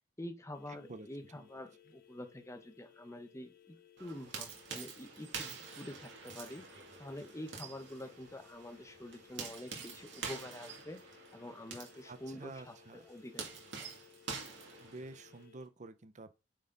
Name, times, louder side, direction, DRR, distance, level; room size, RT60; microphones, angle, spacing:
voice 1, 0.2-11.0 11.3-13.9, left 1 dB, 15° left, 1.0 m, -47 dB
sound 1, 0.5-15.7, left 10 dB, 50° left, 1.3 m, -62 dB
voice 2, 0.7-1.5 12.1-13.1 14.8-16.3, right 2 dB, 40° right, 0.6 m, -50 dB
sound 2, 4.0-15.4, right 5 dB, 70° right, 2.4 m, -47 dB
8.8 x 4.2 x 3.9 m
head